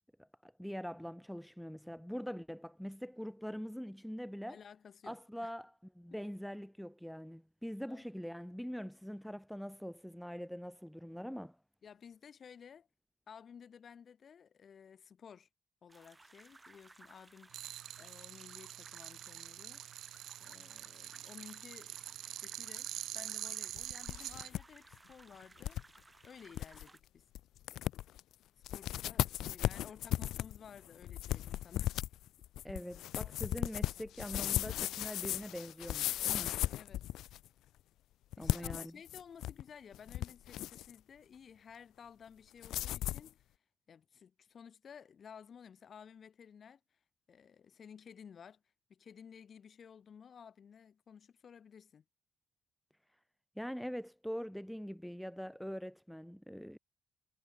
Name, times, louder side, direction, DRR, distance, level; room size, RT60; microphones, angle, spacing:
voice 1, 0.2-4.6 5.0-11.6 32.6-36.5 38.4-38.9 53.6-56.8, equal, ahead, 1.2 m, -43 dB
voice 2, 4.5-5.5 6.1-6.2 7.9-8.1 11.8-12.9 13.3-15.5 15.8-17.5 18.0-19.8 20.4-22.0 22.3-25.8 26.2-27.3 28.6-31.9 36.7-37.2 38.4-43.4 43.9-46.8 47.3-48.6 48.9-52.0, left 7 dB, 50° left, 5.3 m, -55 dB
sound 1, 15.9-27.0, right 2 dB, 20° right, 7.5 m, -60 dB
sound 2, 17.5-24.5, right 13 dB, 80° right, 2.2 m, -45 dB
sound 3, 23.8-24.6 24.9-25.0 25.6-25.8 26.2-26.3 26.5-26.8 27.3-27.4 27.7-28.2 28.6-37.5 38.3-39.6 39.9-40.9 42.6-43.3, left 14 dB, 85° left, 0.6 m, -36 dB
cardioid pair, 90°, 0 cm